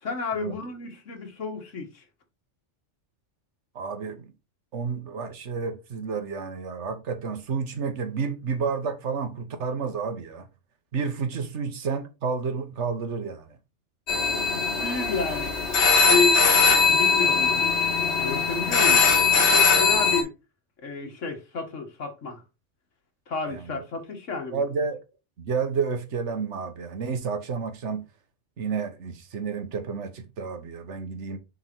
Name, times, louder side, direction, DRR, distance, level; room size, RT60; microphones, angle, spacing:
voice 1, 0.0-2.0 14.8-15.6 16.0-16.4 16.9-17.6 18.2-19.0 19.5-20.3 20.8-22.4 23.3-24.6, left 4 dB, 85° left, 1.9 m, -30 dB
voice 2, 3.7-4.3 4.7-10.5 10.9-13.6 23.5-23.8 24.5-25.0 25.4-28.0 28.6-31.4, right 5 dB, 70° right, 1.4 m, -30 dB
sound 1, 14.1-20.2, left 5 dB, 65° left, 1.6 m, -21 dB
6.8 x 3.7 x 4.4 m
omnidirectional pair, 1.2 m